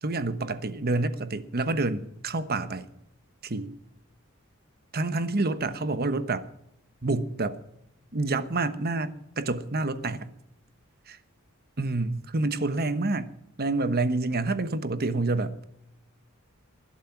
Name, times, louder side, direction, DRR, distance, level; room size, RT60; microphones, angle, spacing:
voice 1, 0.0-2.9 3.4-3.7 4.9-6.5 7.0-7.6 8.1-10.3 11.1-11.2 11.8-13.3 13.6-15.6, right 2 dB, 45° right, 1.2 m, -28 dB
20.5 x 11.5 x 6.0 m
head